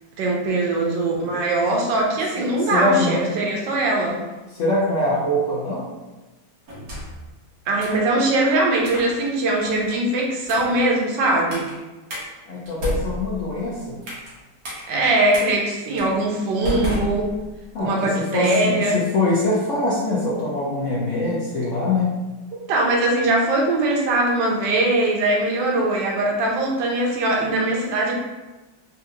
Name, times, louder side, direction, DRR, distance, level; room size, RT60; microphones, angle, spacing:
voice 1, 0.2-4.2 7.7-11.7 14.9-17.3 17.8-19.0 22.5-28.2, right 2 dB, 90° right, -1 dB, 1.4 m, -21 dB
voice 2, 2.4-3.3 4.5-5.9 12.5-14.0 17.7-22.1, left 2 dB, 65° left, -6 dB, 0.8 m, -23 dB
sound 1, 6.7-7.3 7.8-8.1 8.8-9.1 9.6-9.9 10.4-10.8 11.5-11.7 12.1-12.2 12.7-14.3 14.6-14.8 15.3-15.5 16.0-16.1 16.6-17.7, left 1 dB, 65° right, 1.6 m, -31 dB
4.1 x 2.5 x 2.7 m, 1.1 s
omnidirectional pair, 1.9 m